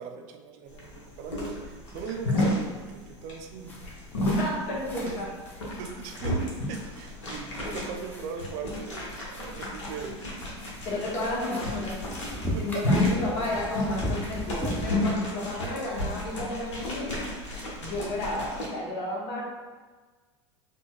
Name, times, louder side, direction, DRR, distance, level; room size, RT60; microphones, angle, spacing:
voice 1, 0.0-3.8 5.0-5.1 5.8-6.4 6.7-10.2 12.5-12.8, right 6 dB, 55° right, 5 dB, 0.4 m, -39 dB
sound 1, 0.7-18.7, left 1 dB, 80° left, 0.9 m, -32 dB
sound 2, 3.7-14.9, equal, 10° left, 0.7 m, -40 dB
voice 2, 4.4-5.3 10.8-12.2 12.6-17.1 17.8-19.4, left 1 dB, 60° left, -4 dB, 1.0 m, -32 dB
4.2 x 2.2 x 2.3 m, 1.4 s
hypercardioid pair, 85°, 15 cm